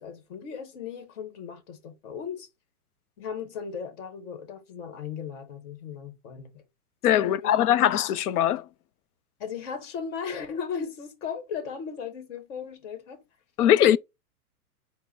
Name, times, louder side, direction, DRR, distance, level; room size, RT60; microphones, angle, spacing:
voice 1, 0.0-2.5 3.2-6.6 7.2-7.6 9.4-13.2, left 6 dB, 50° left, 1.5 m, -37 dB
voice 2, 7.0-8.6 13.6-14.0, left 11 dB, 75° left, 0.5 m, -21 dB
4.7 x 2.1 x 4.2 m
hypercardioid pair, 140°, 46 cm